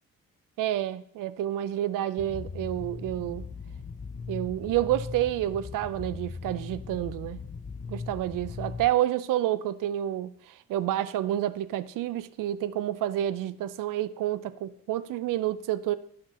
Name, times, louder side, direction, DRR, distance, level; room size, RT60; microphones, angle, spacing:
voice 1, 0.6-3.5 4.3-7.4 7.9-16.0, right 12 dB, 65° right, 0.5 m, -29 dB
sound 1, 2.2-8.9, left 5 dB, 20° left, 0.5 m, -39 dB
9.9 x 5.8 x 3.1 m
supercardioid pair, 65°, 35 cm